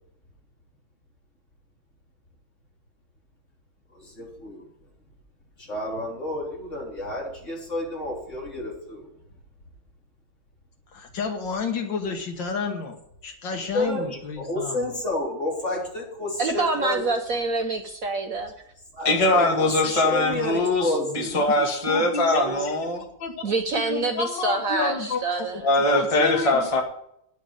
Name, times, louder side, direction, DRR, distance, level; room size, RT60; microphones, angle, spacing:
voice 1, 3.9-4.7 5.6-9.0 13.7-17.0 18.9-21.4 22.3-22.6, left 1 dB, 40° left, -2 dB, 3.7 m, -30 dB
voice 2, 10.9-13.0 13.2-14.9 21.3-23.4 23.9-25.2 25.9-26.6, left 4 dB, 70° left, 5 dB, 2.0 m, -31 dB
voice 3, 16.4-18.5 23.4-25.6, right 3 dB, 55° right, 5 dB, 1.1 m, -26 dB
voice 4, 19.0-23.0 25.6-26.8, left 2 dB, 20° left, 2 dB, 1.6 m, -22 dB
10.0 x 6.3 x 8.7 m, 0.75 s
omnidirectional pair, 2.1 m